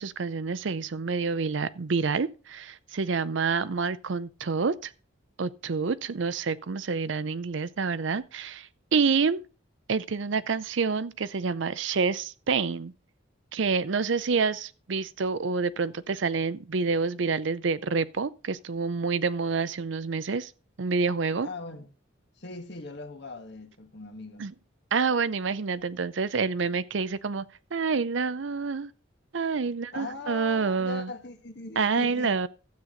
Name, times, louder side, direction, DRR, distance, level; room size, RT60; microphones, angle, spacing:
voice 1, 0.0-4.9 5.4-9.4 9.9-12.9 13.5-20.5 20.8-21.5 24.4-24.5 24.9-27.4 27.7-28.9 29.3-31.1 31.8-32.5, right 5 dB, 70° right, 0.6 m, -28 dB
voice 2, 21.4-21.9 22.3-24.5 29.8-32.4, left 3 dB, 60° left, 1.7 m, -40 dB
12.5 x 8.3 x 3.8 m
head